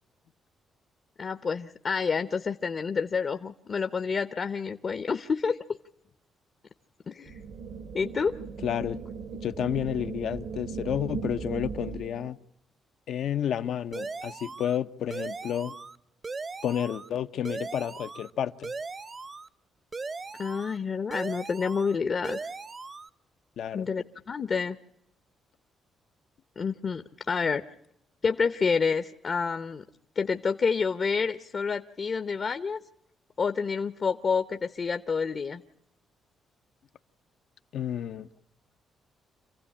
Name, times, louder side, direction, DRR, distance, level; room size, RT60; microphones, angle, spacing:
voice 1, 1.2-5.6 7.1-7.4 7.9-8.3 20.4-22.4 23.7-24.8 26.6-27.6 28.2-29.8 30.2-32.8 33.4-35.6, left 5 dB, 45° left, 10 dB, 0.9 m, -28 dB
sound 1, 7.3-12.3, right 5 dB, 75° right, 1.8 m, -37 dB
voice 2, 8.6-9.0 9.4-12.4 13.1-15.7 16.6-18.7 23.6-23.9 37.7-38.3, left 10 dB, 70° left, 10 dB, 0.9 m, -31 dB
sound 2, 13.9-14.8 15.1-16.0 16.2-17.1 17.4-18.3 18.6-19.5 19.9-20.8 21.1-22.0 22.2-23.1, right 4 dB, 35° right, 0.9 m, -38 dB
27.5 x 15.5 x 9.9 m, 0.80 s
cardioid pair, 90°, 0 cm